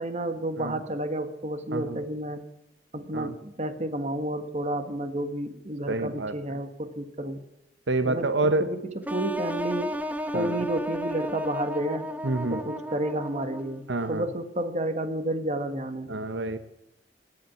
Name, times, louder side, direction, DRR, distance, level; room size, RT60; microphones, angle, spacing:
voice 1, 0.0-2.4 2.9-7.4 8.0-9.9 10.3-12.2 12.5-13.8 14.1-16.1, right 1 dB, 40° right, 9 dB, 1.4 m, -31 dB
voice 2, 5.9-6.3 7.9-8.7 10.3-10.6 12.2-12.6 13.9-14.2 16.1-16.6, right 2 dB, 80° right, 11 dB, 0.9 m, -27 dB
sound 1, 9.1-13.9, equal, 10° right, 0.8 m, -33 dB
19.0 x 8.7 x 8.5 m, 0.88 s
head